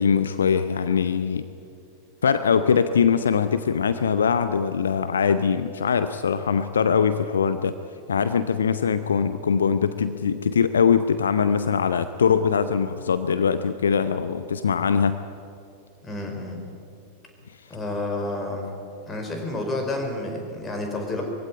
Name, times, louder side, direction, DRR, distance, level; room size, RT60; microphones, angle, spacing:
voice 1, 0.0-1.5 2.2-7.8 8.1-15.2, left 6 dB, 70° left, 11 dB, 0.7 m, -22 dB
voice 2, 16.0-16.6 17.7-18.7 19.1-21.2, left 2 dB, 20° left, 3 dB, 4.9 m, -30 dB
22.5 x 16.0 x 9.6 m, 2.5 s
figure-of-eight pair, 90°, 0 cm